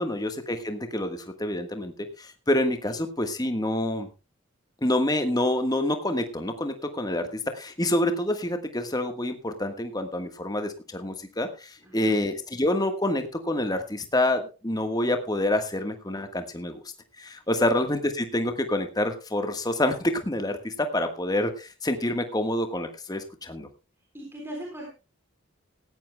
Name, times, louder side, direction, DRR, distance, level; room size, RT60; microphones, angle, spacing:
voice 1, 0.0-4.1 4.8-7.3 7.5-16.8 17.2-23.7, left 1 dB, 20° left, 7 dB, 1.4 m, -27 dB
voice 2, 24.1-24.9, right 1 dB, 10° right, 0 dB, 3.7 m, -39 dB
18.0 x 14.0 x 2.2 m, 0.31 s
head